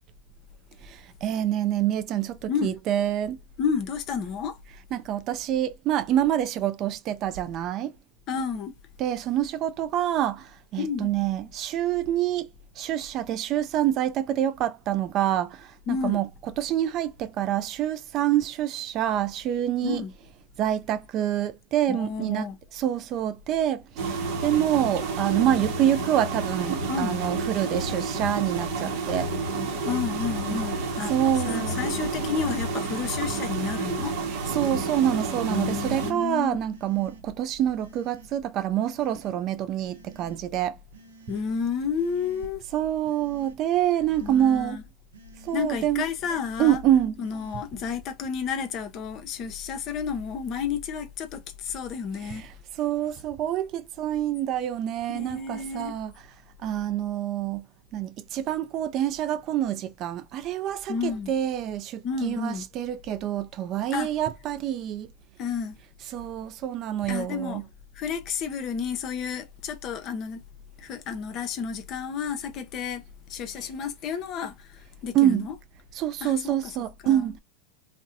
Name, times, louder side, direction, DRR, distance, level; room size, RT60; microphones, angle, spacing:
voice 1, 0.8-3.4 4.9-7.9 9.0-12.5 12.8-16.3 16.6-20.0 20.6-22.4 22.7-29.3 31.1-31.8 34.5-40.8 42.7-44.8 45.4-46.1 46.6-47.1 52.2-52.5 52.8-56.1 56.6-57.6 57.9-65.1 66.1-67.6 75.1-75.5 76.0-77.4, right 11 dB, 40° right, 0.3 m, -26 dB
voice 2, 2.5-2.8 3.6-4.6 8.3-8.7 10.8-11.1 15.9-16.2 19.8-20.1 21.9-22.6 26.9-27.2 29.8-34.2 35.5-36.6 41.3-42.6 44.2-44.8 45.5-52.5 55.1-55.9 60.9-61.3 62.0-62.7 63.9-64.1 65.4-65.8 67.1-67.7 67.9-70.4 70.8-73.0 73.3-75.6 76.2-77.3, left 6 dB, 40° left, 0.6 m, -31 dB
sound 1, 24.0-36.1, right 3 dB, 55° right, 0.7 m, -30 dB
sound 2, 36.7-37.2 37.8-38.3 38.8-39.3 39.9-40.4 40.9-41.4 41.9-42.5 43.0-43.6 44.1-44.6 45.1-45.7 46.2-46.7 47.2-47.6, right 4 dB, 90° right, 0.6 m, -51 dB
2.6 x 2.1 x 2.5 m
hypercardioid pair, 110°, 0 cm